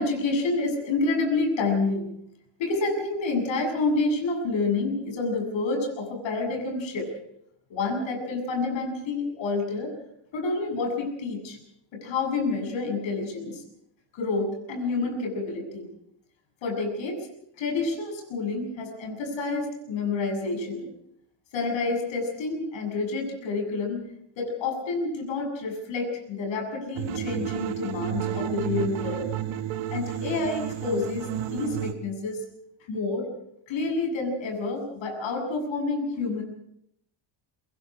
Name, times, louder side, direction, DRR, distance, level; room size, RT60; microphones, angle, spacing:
voice 1, 0.0-2.0 2.6-7.1 7.7-9.9 10.3-11.6 11.9-13.6 14.1-15.9 16.6-17.2 17.6-20.9 21.5-24.1 24.4-29.3 29.9-32.4 32.9-33.3 33.7-36.4, left 3 dB, 75° left, 3 dB, 7.5 m, -28 dB
sound 1, 27.0-31.9, right 11 dB, 80° right, 1.7 m, -31 dB
24.5 x 22.5 x 4.9 m, 0.75 s
cardioid pair, 140°, 46 cm